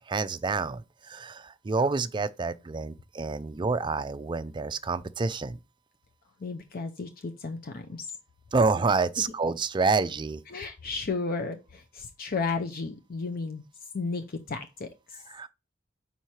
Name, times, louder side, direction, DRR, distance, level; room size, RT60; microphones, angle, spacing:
voice 1, 0.1-5.6 8.5-10.4 15.3-15.5, right 4 dB, 25° right, 0.4 m, -28 dB
voice 2, 6.4-8.1 10.5-13.6 13.9-15.2, left 4 dB, 45° left, 0.6 m, -33 dB
5.6 x 4.3 x 4.6 m
head